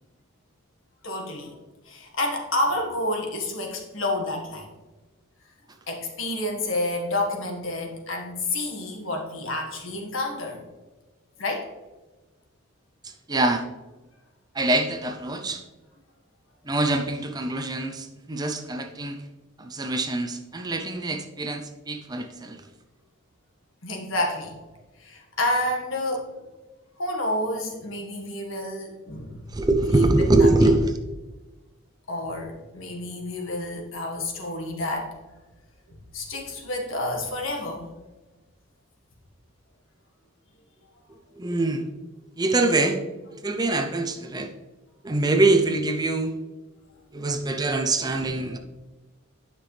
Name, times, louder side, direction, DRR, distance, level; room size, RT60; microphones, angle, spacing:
voice 1, 1.0-1.6 1.8-4.7 5.9-10.6 11.4-11.7 23.8-24.6 25.0-26.3 27.0-29.4 29.9-30.1 30.4-30.5 32.1-35.1 36.1-37.9 48.0-48.3, left 1 dB, 70° left, 2 dB, 1.6 m, -29 dB
voice 2, 13.0-13.6 14.5-15.6 16.6-19.2 19.6-22.6 29.5-30.9 41.4-41.9 42.4-43.0 43.4-44.5 45.0-46.3 47.1-48.6, right 2 dB, 20° right, 5 dB, 0.5 m, -24 dB
10.0 x 6.0 x 3.3 m, 1.2 s
head